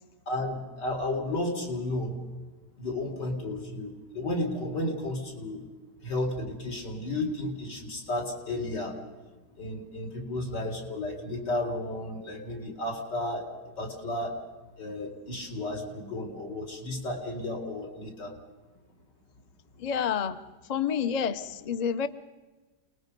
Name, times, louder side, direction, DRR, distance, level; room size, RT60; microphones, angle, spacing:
voice 1, 0.3-2.1 2.8-5.7 6.0-9.0 9.6-13.5 13.8-14.4 14.8-18.3, left 1 dB, 75° left, -1 dB, 4.5 m, -33 dB
voice 2, 19.8-20.4 20.7-22.1, left 7 dB, 45° left, 11 dB, 0.5 m, -28 dB
29.0 x 20.5 x 5.3 m, 1.2 s
omnidirectional pair, 1.9 m